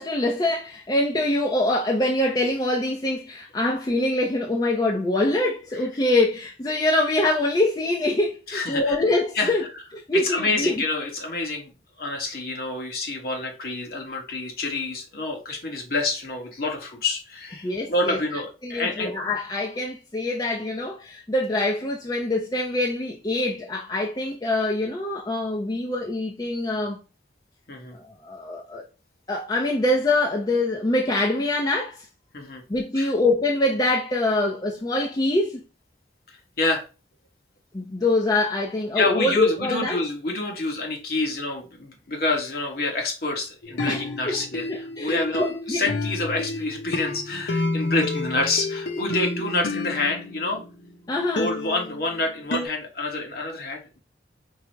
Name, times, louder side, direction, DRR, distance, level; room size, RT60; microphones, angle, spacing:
voice 1, 0.0-9.7 9.9-10.7 17.6-18.2 18.6-27.0 28.0-28.8 29.3-32.1 32.7-35.6 37.7-40.0 43.9-44.4 44.7-45.8 51.1-51.5, left 2 dB, 20° left, 0.4 m, -24 dB
voice 2, 8.5-9.0 9.3-9.5 10.1-11.7 12.0-19.1 27.7-28.0 32.3-32.6 33.0-33.1 36.3-36.8 38.9-50.6 51.4-54.0, left 2 dB, 55° left, 1.1 m, -27 dB
sound 1, 43.6-50.9 51.4-52.7, left 2 dB, 75° left, 0.8 m, -30 dB
4.6 x 2.0 x 4.5 m
head